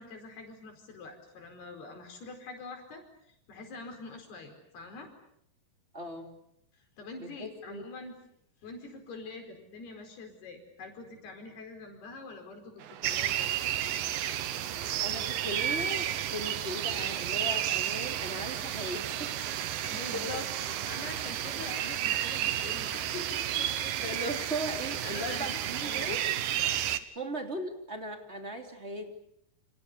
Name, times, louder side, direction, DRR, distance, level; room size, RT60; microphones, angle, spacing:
voice 1, 0.0-5.1 7.0-8.2 8.6-13.5 19.8-20.5 20.9-24.5 25.0-26.2, left 3 dB, 70° left, 4 dB, 6.5 m, -45 dB
voice 2, 5.9-6.3 7.2-7.9 15.0-19.4 20.1-20.3 20.7-20.8 24.0-26.3 27.1-29.1, right 1 dB, 15° right, 4 dB, 2.8 m, -38 dB
sound 1, 12.8-21.2, right 9 dB, 85° right, 1.4 m, -50 dB
sound 2, 13.0-27.0, right 11 dB, 65° right, 2.4 m, -32 dB
29.0 x 28.0 x 6.8 m, 0.75 s
omnidirectional pair, 4.9 m